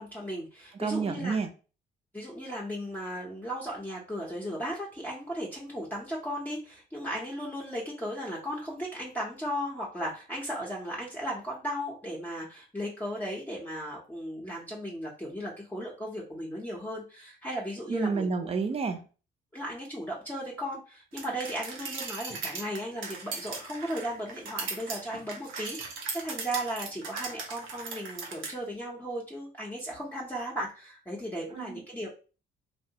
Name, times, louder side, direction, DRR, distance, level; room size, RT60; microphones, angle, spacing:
voice 1, 0.0-1.4 2.1-18.3 19.5-32.1, equal, 10° left, -4 dB, 0.6 m, -36 dB
voice 2, 0.7-1.5 17.9-19.0 31.5-31.8, right 4 dB, 30° right, 6 dB, 0.5 m, -29 dB
sound 1, 21.2-28.5, right 4 dB, 85° right, 0.6 m, -38 dB
2.7 x 2.1 x 2.7 m, 0.35 s
cardioid pair, 90°, 20 cm